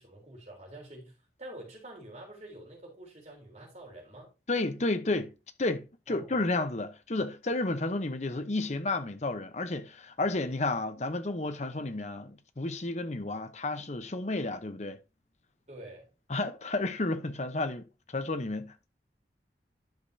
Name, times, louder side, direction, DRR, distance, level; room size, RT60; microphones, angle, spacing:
voice 1, 0.0-4.3 6.1-6.5 15.7-16.1, right 1 dB, 40° right, 3.6 m, -47 dB
voice 2, 4.5-5.3 5.6-15.0 16.3-18.9, left 2 dB, 40° left, 0.8 m, -32 dB
11.5 x 5.3 x 2.7 m
head